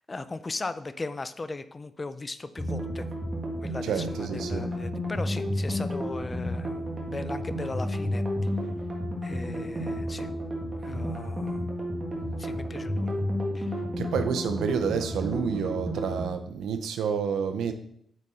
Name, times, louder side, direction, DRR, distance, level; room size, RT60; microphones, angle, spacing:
voice 1, 0.1-3.1 3.6-8.5 9.2-10.3 10.8-11.7 12.4-13.2 13.5-13.8, left 3 dB, 30° left, 13 dB, 0.5 m, -38 dB
sound 1, 2.6-16.3, equal, 35° right, 1.8 m, -31 dB
voice 2, 3.8-4.7 14.0-17.7, right 6 dB, 85° right, 9 dB, 0.7 m, -29 dB
8.3 x 4.1 x 4.3 m, 0.68 s
cardioid pair, 75°, 0 cm